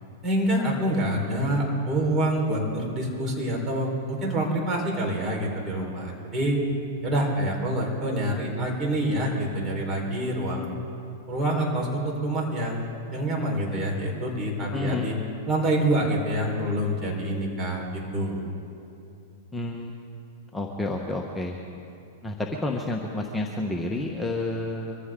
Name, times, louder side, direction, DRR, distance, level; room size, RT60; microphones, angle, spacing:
voice 1, 0.2-6.6 7.0-10.7 11.3-15.1 15.5-17.9 18.1-18.4, right 1 dB, 30° right, -1 dB, 4.4 m, -26 dB
voice 2, 14.7-15.1 19.5-19.9 20.5-21.6 22.2-25.0, left 2 dB, 5° left, -1 dB, 1.2 m, -30 dB
24.0 x 15.0 x 3.8 m, 2.7 s
hypercardioid pair, 125°, 0 cm